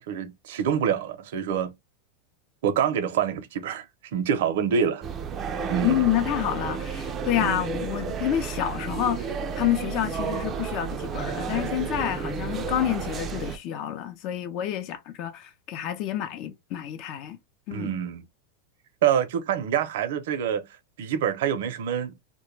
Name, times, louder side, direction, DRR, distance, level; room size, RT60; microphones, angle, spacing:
voice 1, 0.1-1.7 2.6-3.9 4.1-5.1 5.7-6.0 7.4-7.6 17.7-18.2 19.0-20.7 21.0-22.1, right 8 dB, 70° right, 0.5 m, -26 dB
sound 1, 5.0-13.6, right 6 dB, 25° right, 0.4 m, -32 dB
voice 2, 5.8-17.4 17.7-17.9, left 11 dB, 45° left, 0.4 m, -28 dB
2.1 x 2.1 x 3.1 m
supercardioid pair, 145°, 0 cm